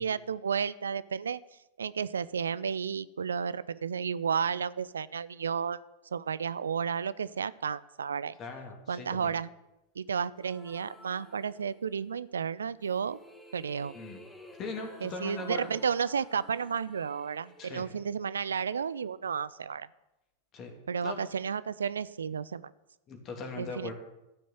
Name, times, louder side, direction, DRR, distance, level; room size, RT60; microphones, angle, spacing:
voice 1, 0.0-1.4 1.8-5.8 6.1-8.3 8.9-9.5 10.0-13.2 13.5-13.9 15.0-19.9 20.9-22.7 23.6-23.9, right 6 dB, 70° right, 18 dB, 0.4 m, -32 dB
voice 2, 8.4-9.4 13.9-14.2 14.6-15.7 17.6-17.9 20.5-20.7 21.0-21.2 23.1-23.9, left 3 dB, 35° left, 4 dB, 2.8 m, -39 dB
sound 1, 10.4-12.1 12.8-18.9, left 1 dB, 5° left, 1.8 m, -53 dB
13.0 x 6.2 x 9.3 m, 0.94 s
figure-of-eight pair, 90°, 0 cm